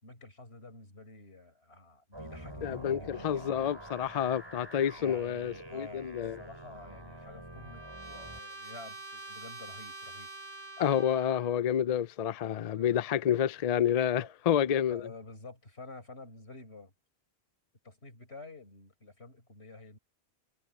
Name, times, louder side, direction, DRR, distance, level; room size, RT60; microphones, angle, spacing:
voice 1, 0.0-3.6 5.0-10.3 12.7-13.0 14.2-14.3 14.9-16.9 17.8-20.0, left 2 dB, 75° left, 5.1 m, -49 dB
sound 1, 2.1-8.4, right 1 dB, 25° right, 4.3 m, -47 dB
voice 2, 2.6-6.4 10.8-15.0, left 9 dB, 55° left, 0.4 m, -29 dB
Trumpet, 6.7-11.6, right 3 dB, 90° right, 5.5 m, -46 dB
omnidirectional pair, 1.1 m